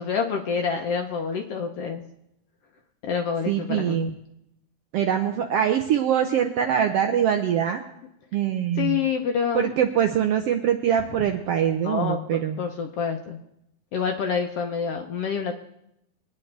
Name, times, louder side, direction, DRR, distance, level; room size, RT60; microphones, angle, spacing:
voice 1, 0.0-2.1 3.0-4.1 8.8-9.7 11.8-13.4 13.9-15.5, left 6 dB, 65° left, 4 dB, 1.5 m, -27 dB
voice 2, 3.5-4.1 4.9-7.8 8.3-9.0 9.5-12.6, right 9 dB, 75° right, 5 dB, 1.4 m, -23 dB
23.0 x 9.7 x 3.4 m, 0.80 s
omnidirectional pair, 3.5 m